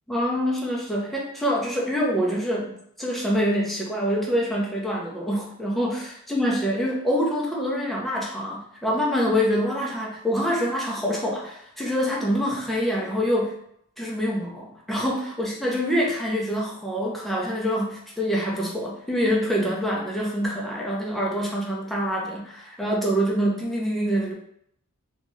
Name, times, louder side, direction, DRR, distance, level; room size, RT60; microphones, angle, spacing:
voice 1, 0.1-2.7 3.0-13.6 14.0-24.3, equal, ahead, -3 dB, 0.5 m, -25 dB
2.7 x 2.3 x 3.0 m, 0.70 s
head